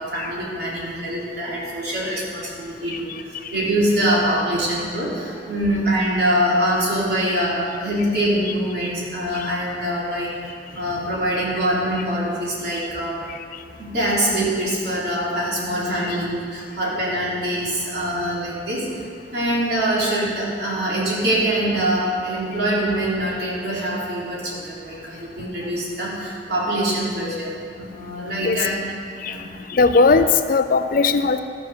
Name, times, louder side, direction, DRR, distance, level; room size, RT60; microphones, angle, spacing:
voice 1, 0.0-3.1 3.5-10.3 10.7-13.2 13.8-19.0 19.3-28.7 29.2-29.5, right 1 dB, 65° right, -6 dB, 3.4 m, -24 dB
voice 2, 29.7-31.4, left 4 dB, 50° left, 10 dB, 0.5 m, -17 dB
13.5 x 7.2 x 6.3 m, 2.2 s
head